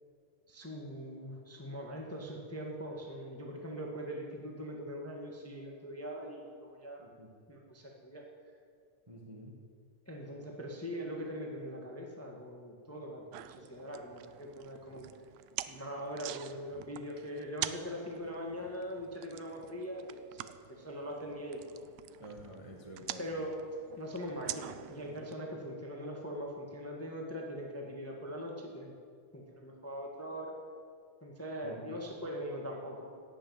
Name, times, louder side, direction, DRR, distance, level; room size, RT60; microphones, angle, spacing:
voice 1, 0.5-7.1 7.5-8.2 10.1-15.1 15.7-21.9 23.2-23.7 24.0-28.9 29.3-30.5 31.2-33.1, equal, 15° left, 0 dB, 0.5 m, -41 dB
voice 2, 9.1-9.5 22.2-23.2 31.6-31.9, equal, 55° right, -1 dB, 0.3 m, -49 dB
sound 1, 13.3-25.3, right 13 dB, 85° right, 1.4 m, -46 dB
16.5 x 6.9 x 9.4 m, 2.2 s
omnidirectional pair, 3.5 m